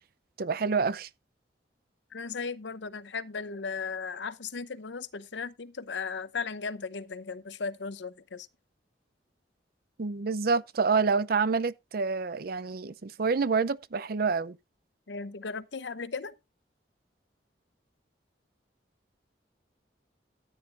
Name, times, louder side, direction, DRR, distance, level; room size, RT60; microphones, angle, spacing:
voice 1, 0.4-1.1 10.0-14.6, right 5 dB, 55° right, 0.5 m, -27 dB
voice 2, 2.1-8.5 15.1-16.3, left 5 dB, 80° left, 0.8 m, -36 dB
14.0 x 9.8 x 2.5 m
head